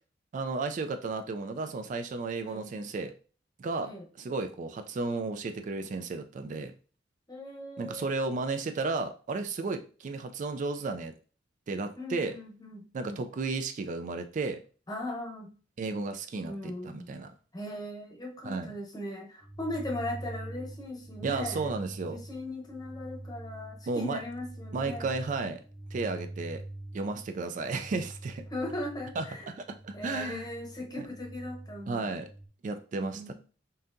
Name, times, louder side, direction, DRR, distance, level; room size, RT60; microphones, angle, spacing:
voice 1, 0.3-3.1 3.6-3.9 4.2-6.7 7.8-11.1 11.7-12.3 12.9-14.6 15.8-17.3 18.4-18.7 21.2-22.2 23.9-24.2 24.7-25.6 25.9-26.6 26.9-28.4 29.2-29.3 29.5-30.5 31.0-31.1 31.9-32.3 32.6-33.3, right 3 dB, 45° right, 8 dB, 0.3 m, -33 dB
voice 2, 7.3-8.1 12.0-13.2 14.9-15.5 16.4-17.1 17.5-21.7 22.1-25.2 28.5-29.5 29.9-32.1 32.9-33.3, left 1 dB, 20° left, 1 dB, 0.8 m, -39 dB
sound 1, 19.4-32.5, right 1 dB, 10° right, 0.8 m, -44 dB
5.5 x 2.7 x 2.5 m, 0.38 s
head